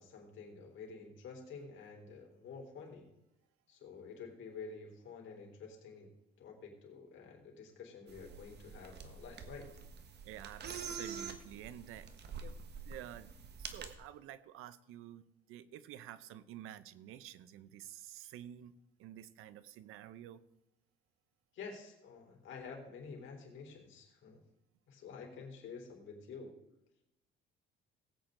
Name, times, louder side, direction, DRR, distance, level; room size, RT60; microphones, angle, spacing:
voice 1, 0.0-3.1 3.7-6.1 6.4-9.7 21.5-24.4 24.9-26.6, left 5 dB, 65° left, 1 dB, 4.0 m, -49 dB
sound 1, 8.1-13.9, right 5 dB, 55° right, 1.5 m, -47 dB
voice 2, 10.2-12.1 12.4-12.5 12.8-13.3 13.6-18.7 19.0-20.4, right 12 dB, 85° right, 15 dB, 0.8 m, -50 dB
18.5 x 8.8 x 3.9 m, 0.89 s
cardioid pair, 110°, 21 cm